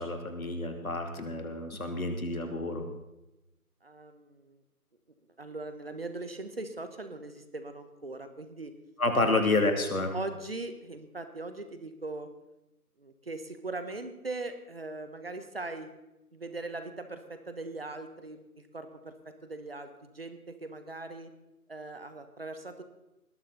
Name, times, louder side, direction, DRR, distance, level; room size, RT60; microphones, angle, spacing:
voice 1, 0.0-2.9 9.0-10.1, left 2 dB, 65° left, 5 dB, 3.0 m, -29 dB
voice 2, 3.8-4.6 5.4-8.7 9.2-9.5 10.1-12.3 13.0-15.9 16.3-21.3 21.7-22.8, right 2 dB, 40° right, 9 dB, 1.3 m, -40 dB
19.5 x 13.5 x 4.1 m, 0.94 s
figure-of-eight pair, 160°, 46 cm